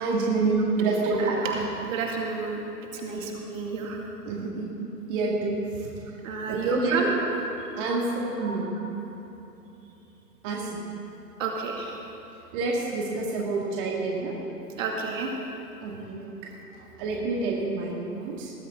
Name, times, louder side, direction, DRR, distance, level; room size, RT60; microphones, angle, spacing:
voice 1, 0.0-1.4 3.1-3.2 4.2-4.7 5.1-5.9 6.5-7.1 7.8-8.8 10.4-10.8 12.5-14.4 15.8-16.3 17.0-18.5, right 3 dB, 30° right, -3 dB, 2.1 m, -28 dB
voice 2, 1.2-2.6 2.9-4.0 6.2-7.1 8.4-8.6 11.4-12.0 14.8-15.4, right 4 dB, 50° right, 0 dB, 2.5 m, -30 dB
20.0 x 13.5 x 3.8 m, 3.0 s
figure-of-eight pair, 130°, 49 cm